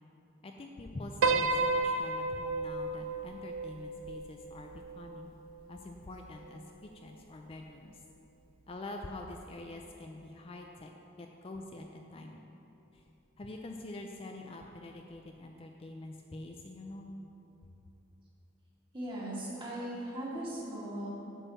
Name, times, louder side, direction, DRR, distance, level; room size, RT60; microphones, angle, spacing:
voice 1, 0.4-5.3 5.7-8.0 8.7-10.9 11.2-12.4 12.9-13.1 13.4-17.2, left 2 dB, 30° left, 2 dB, 0.4 m, -45 dB
Piano, 1.2-5.6, right 3 dB, 75° right, 0.4 m, -32 dB
voice 2, 18.9-21.1, right 1 dB, 25° right, -6 dB, 2.1 m, -38 dB
8.3 x 5.6 x 6.9 m, 2.9 s
head